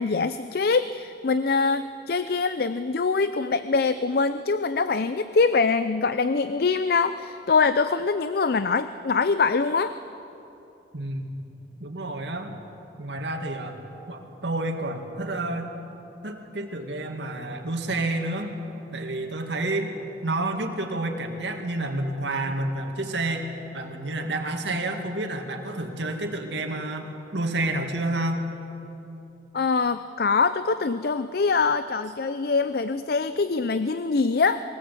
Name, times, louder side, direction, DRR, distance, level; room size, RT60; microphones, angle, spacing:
voice 1, 0.0-9.9 29.5-34.6, left 4 dB, 55° left, 12 dB, 0.5 m, -24 dB
voice 2, 10.9-11.4 11.8-12.6 13.0-15.7 16.2-18.6 18.9-19.9 20.2-28.5, right 2 dB, 80° right, 3 dB, 2.2 m, -29 dB
22.0 x 19.0 x 8.5 m, 2.9 s
head